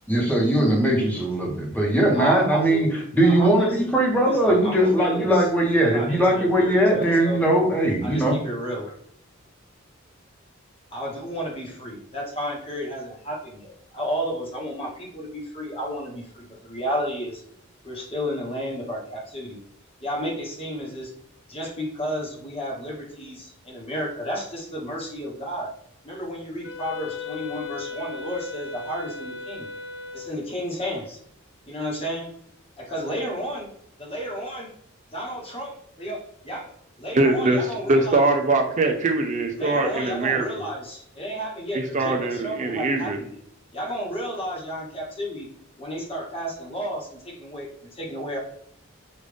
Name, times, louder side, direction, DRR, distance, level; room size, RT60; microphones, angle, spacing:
voice 1, 0.1-2.9 3.1-8.4, right 1 dB, 10° left, -1 dB, 1.0 m, -20 dB
voice 2, 2.0-3.8 4.2-5.5 5.8-7.4 8.0-9.0 10.9-17.4 17.8-19.6 20.0-21.1 21.5-25.7 26.0-29.7 30.1-31.2 31.7-32.3 32.8-33.7 34.0-34.7 35.1-36.7 37.0-38.2 39.5-43.4 43.7-45.5 45.8-48.4, equal, 30° left, -2 dB, 1.1 m, -32 dB
Wind instrument woodwind instrument, 26.6-30.5, left 5 dB, 65° left, 0.6 m, -36 dB
voice 3, 37.1-40.6 41.7-43.2, right 2 dB, 35° right, 4 dB, 0.5 m, -22 dB
5.2 x 2.5 x 3.3 m, 0.69 s
head